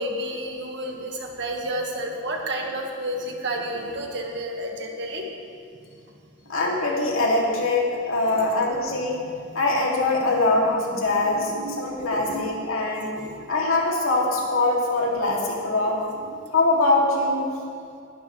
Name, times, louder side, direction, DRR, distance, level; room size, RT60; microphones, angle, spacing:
voice 1, 0.0-5.3 8.2-8.5 9.1-9.2 10.3-10.6 10.9-12.7 13.0-13.5, right 1 dB, 55° right, 1 dB, 1.8 m, -32 dB
voice 2, 6.5-9.2 9.5-13.1 13.5-16.0 16.5-17.5, left 2 dB, 80° left, -3 dB, 2.8 m, -23 dB
21.0 x 11.5 x 3.3 m, 2.4 s
head